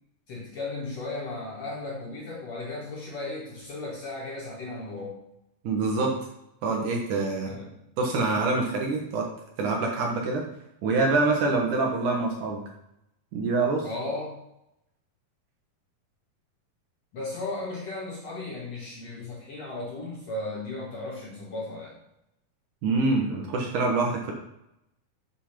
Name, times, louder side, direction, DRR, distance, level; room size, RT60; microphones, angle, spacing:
voice 1, 0.3-5.2 7.4-7.8 13.8-14.4 17.1-22.0, left 2 dB, 60° left, -3 dB, 1.9 m, -35 dB
voice 2, 5.6-6.2 6.6-7.5 8.0-9.3 9.6-10.4 10.8-12.6 13.3-13.9 22.8-24.3, right 3 dB, 65° right, 1 dB, 2.2 m, -25 dB
7.0 x 5.4 x 5.8 m, 0.85 s
omnidirectional pair, 4.5 m